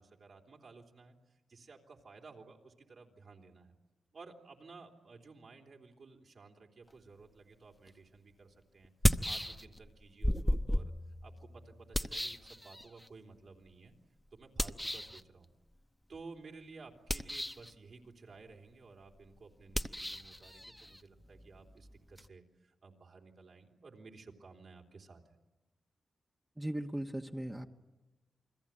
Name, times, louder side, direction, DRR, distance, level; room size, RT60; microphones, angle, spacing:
voice 1, 0.0-3.7 4.1-13.9 14.3-15.5 16.1-25.4, right 4 dB, 60° right, 2 dB, 3.6 m, -55 dB
sound 1, 7.9-8.0 8.8-9.9 10.2-13.1 14.6-15.2 17.0-17.7 19.7-22.3, left 1 dB, 5° left, 0.9 m, -34 dB
voice 2, 26.6-27.7, right 1 dB, 10° right, 3 dB, 1.3 m, -38 dB
29.0 x 21.5 x 9.0 m, 1.1 s
cardioid pair, 80°, 0 cm